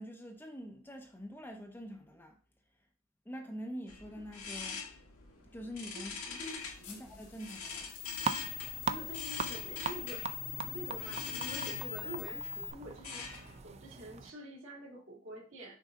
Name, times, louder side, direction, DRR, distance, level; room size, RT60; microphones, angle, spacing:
voice 1, 0.0-2.4 3.2-4.8 5.5-6.2 6.8-8.0, equal, 10° left, 0.7 m, -45 dB
sound 1, 3.9-13.6, left 5 dB, 90° left, 1.7 m, -45 dB
sound 2, 6.4-12.7, left 10 dB, 75° left, 1.9 m, -43 dB
voice 2, 6.4-7.2 8.9-10.3 10.7-13.3 13.6-15.8, right 1 dB, 65° right, 2.3 m, -47 dB
sound 3, 8.2-14.3, right 5 dB, 30° right, 0.4 m, -41 dB
6.3 x 4.1 x 3.7 m
head